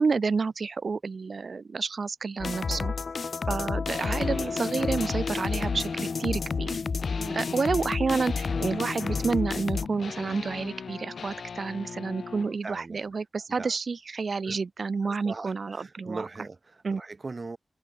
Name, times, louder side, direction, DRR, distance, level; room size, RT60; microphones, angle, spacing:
voice 1, 0.0-2.9 3.5-6.8 7.3-16.2 16.8-17.0, right 4 dB, 65° right, 0.9 m, -29 dB
sound 1, 2.4-9.9, left 5 dB, 65° left, 0.4 m, -30 dB
voice 2, 2.6-2.9 3.4-4.1 7.1-7.4 12.6-13.1 13.6-13.8 14.4-14.6 15.0-17.6, right 3 dB, 45° right, 5.8 m, -41 dB
sound 2, 3.9-12.5, left 5 dB, 80° left, 3.2 m, -40 dB
wide cardioid pair, 75°, 0 cm